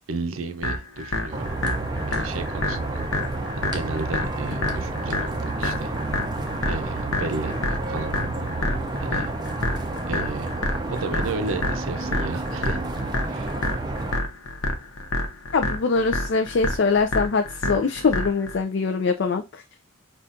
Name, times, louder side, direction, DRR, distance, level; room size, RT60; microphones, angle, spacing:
voice 1, 0.0-1.5 2.1-3.0 3.5-5.9 6.7-8.1 9.0-9.3 10.1-10.5 10.9-12.8 13.3-13.6, right 3 dB, 75° right, 0.5 m, -33 dB
sound 1, 0.6-18.6, left 2 dB, 85° left, 0.9 m, -29 dB
sound 2, 1.3-14.2, right 2 dB, 20° right, 0.4 m, -30 dB
voice 2, 15.5-19.6, left 4 dB, 55° left, 0.4 m, -23 dB
5.6 x 2.4 x 2.5 m
head